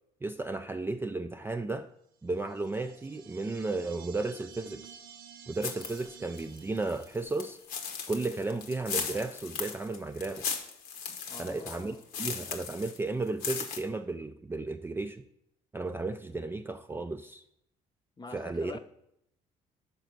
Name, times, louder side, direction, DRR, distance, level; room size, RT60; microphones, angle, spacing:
voice 1, 0.2-1.9 2.2-5.0 5.5-7.6 8.1-10.5 11.4-15.2 15.7-17.4 18.3-18.8, right 3 dB, 15° right, 0.3 m, -34 dB
sound 1, 2.3-7.7, right 8 dB, 70° right, 0.6 m, -52 dB
sound 2, 5.6-6.1 6.4-13.0 13.3-13.8, left 6 dB, 70° left, 0.9 m, -37 dB
voice 2, 11.3-12.1 18.2-18.8, left 4 dB, 25° left, 0.7 m, -45 dB
6.1 x 4.0 x 5.8 m
supercardioid pair, 65°, 16 cm